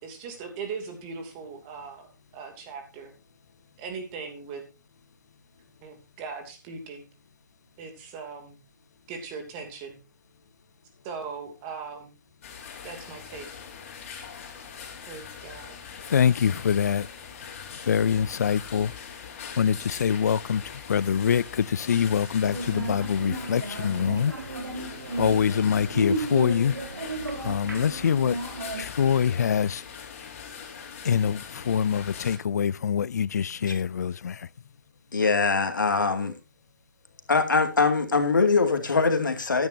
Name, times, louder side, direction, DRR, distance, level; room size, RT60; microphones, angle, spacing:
voice 1, 0.0-3.1 3.8-4.6 5.8-7.1 7.8-8.6 9.1-10.0 11.0-12.2 12.8-13.5 15.1-15.8, right 5 dB, 25° right, 2.8 m, -39 dB
sound 1, 12.4-32.4, left 7 dB, 40° left, 3.7 m, -42 dB
voice 2, 16.1-17.1 17.8-18.9 19.2-19.3 19.6-24.3 24.7-26.8 27.4-28.4 28.8-29.8 31.0-34.5, left 7 dB, 55° left, 0.5 m, -25 dB
sound 2, 22.4-28.8, right 2 dB, 90° right, 4.2 m, -34 dB
voice 3, 35.1-36.3 37.3-39.7, left 4 dB, 75° left, 2.4 m, -23 dB
13.5 x 10.5 x 2.7 m
figure-of-eight pair, 145°, 11 cm